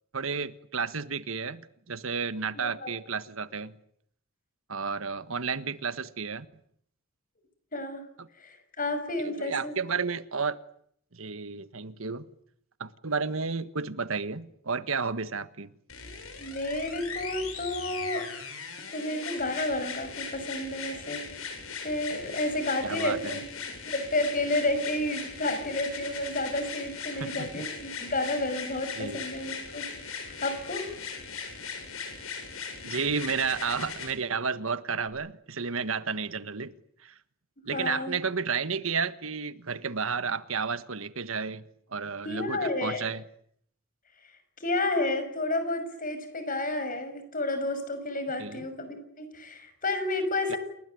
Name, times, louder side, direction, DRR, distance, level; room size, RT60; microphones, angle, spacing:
voice 1, 0.1-1.6 1.9-3.7 4.7-6.5 8.2-8.3 9.2-10.6 11.1-12.2 12.8-15.7 22.8-23.4 27.1-27.7 29.0-29.2 32.8-36.7 37.0-37.1 37.7-41.6 41.9-43.2 48.4-48.6 50.5-50.6, right 5 dB, 70° right, 1.5 m, -32 dB
voice 2, 2.5-3.0 7.7-8.0 8.4-9.8 16.4-18.2 18.9-21.5 21.8-23.5 23.8-30.9 37.7-38.2 42.2-43.1 44.6-50.6, left 2 dB, 40° left, 6.1 m, -31 dB
sound 1, 15.9-34.1 35.1-35.2, left 5 dB, 80° left, 7.7 m, -39 dB
29.0 x 20.0 x 9.5 m
head